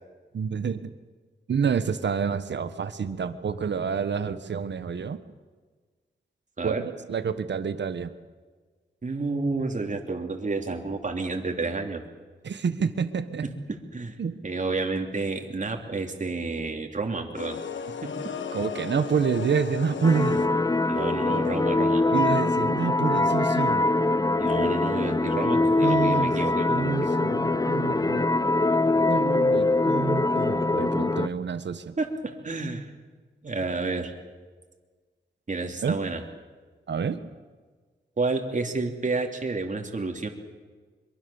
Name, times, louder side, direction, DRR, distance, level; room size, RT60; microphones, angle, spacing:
voice 1, 0.3-0.9 1.5-5.2 6.6-8.1 9.9-10.0 12.4-13.4 14.2-14.4 18.5-20.4 22.1-23.8 25.3-26.3 26.7-28.3 29.1-31.9 35.8-36.0 36.9-37.2, right 6 dB, 70° right, 11 dB, 1.4 m, -28 dB
voice 2, 9.0-12.0 13.4-14.2 14.4-17.6 18.0-18.1 20.9-22.0 24.4-27.1 32.0-32.9 33.4-34.1 35.5-36.2 38.2-40.3, right 3 dB, 40° right, 3 dB, 3.2 m, -30 dB
sound 1, 17.3-20.8, left 6 dB, 85° left, 1.4 m, -35 dB
sound 2, 20.0-31.3, left 2 dB, 20° left, 0.7 m, -23 dB
23.5 x 23.5 x 7.2 m, 1.4 s
cardioid pair, 70°, 19 cm